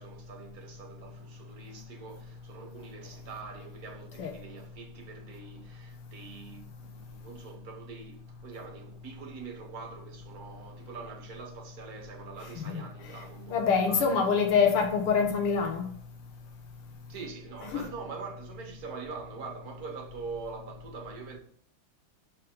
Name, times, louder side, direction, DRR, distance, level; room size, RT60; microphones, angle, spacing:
voice 1, 0.0-14.1 17.1-21.4, right 4 dB, 50° right, 1.4 m, -44 dB
voice 2, 13.5-15.9 17.7-17.9, left 6 dB, 85° left, 2.1 m, -25 dB
6.5 x 4.9 x 3.7 m
omnidirectional pair, 2.4 m